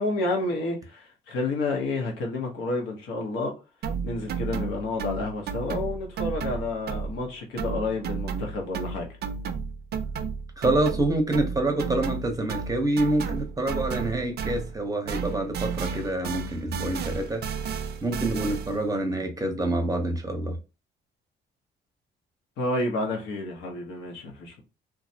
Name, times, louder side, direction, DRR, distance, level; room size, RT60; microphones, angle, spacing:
voice 1, 0.0-3.5 4.0-9.1 22.6-24.6, left 2 dB, 90° left, 0.8 m, -30 dB
sound 1, 3.8-7.3 7.6-14.8 15.1-18.9, right 6 dB, 55° right, 0.4 m, -33 dB
voice 2, 10.6-17.4 18.0-20.6, right 1 dB, 15° right, 0.7 m, -27 dB
2.3 x 2.0 x 2.6 m
cardioid pair, 90°, 20 cm